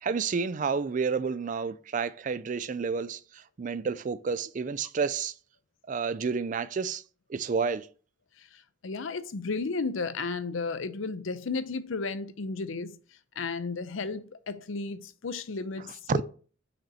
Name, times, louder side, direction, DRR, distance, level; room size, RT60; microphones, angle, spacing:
voice 1, 0.0-5.3 5.9-7.0 7.3-7.9 15.8-16.2, right 5 dB, 40° right, 0.3 m, -30 dB
voice 2, 8.8-13.0 13.4-16.2, left 4 dB, 85° left, 0.6 m, -33 dB
6.2 x 5.1 x 4.2 m
head